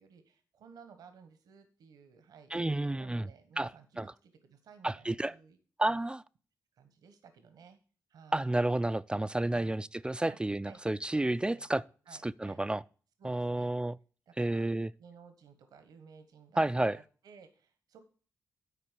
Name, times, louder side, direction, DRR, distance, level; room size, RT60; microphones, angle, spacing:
voice 1, 0.0-2.5 2.9-5.6 5.9-6.0 6.8-7.8 8.1-8.5 9.5-9.8 10.2-10.8 11.1-11.7 12.1-12.6 13.2-13.7 14.3-14.7 15.0-18.0, right 6 dB, 85° right, 1.2 m, -56 dB
voice 2, 2.5-3.3 3.6-3.7 4.0-4.1 4.8-5.3 5.8-6.2 8.3-11.8 12.2-12.8 13.2-14.0 14.4-14.9 16.6-17.0, right 1 dB, 15° right, 0.3 m, -30 dB
9.8 x 4.3 x 7.4 m
cardioid pair, 55°, 6 cm